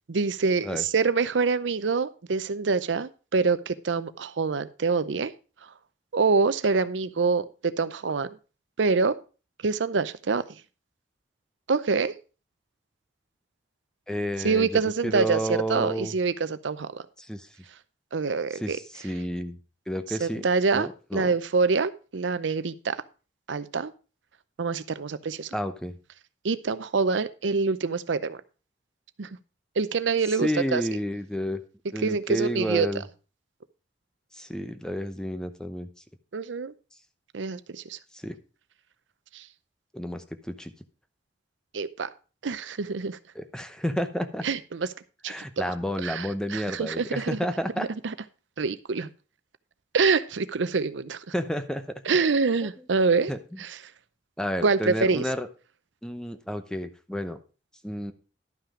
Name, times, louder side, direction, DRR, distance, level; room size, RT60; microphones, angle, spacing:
voice 1, 0.1-5.3 6.1-8.3 8.8-9.2 9.6-10.4 11.7-12.1 14.4-17.0 18.1-18.8 20.2-23.0 23.5-23.9 24.6-25.5 26.4-28.4 29.2-29.3 29.8-30.8 32.0-32.9 36.3-36.7 37.3-38.0 39.3-39.4 41.7-42.1 42.4-43.2 44.4-44.9 45.2-45.6 46.0-47.4 47.8-48.1 48.6-49.1 49.9-51.2 52.1-53.3 53.6-53.7 54.6-55.2, right 4 dB, 90° right, 14 dB, 0.6 m, -26 dB
voice 2, 14.1-16.1 17.2-17.5 18.5-19.6 19.9-20.5 20.7-21.3 25.5-26.0 30.4-31.6 31.9-33.0 34.3-35.9 38.1-38.4 39.9-40.7 43.3-44.5 45.3-47.9 51.3-52.2 52.8-52.9 53.3-53.6 54.4-55.5 56.0-57.4 57.8-58.1, equal, 5° left, 9 dB, 0.8 m, -31 dB
11.5 x 5.8 x 5.0 m, 0.34 s
head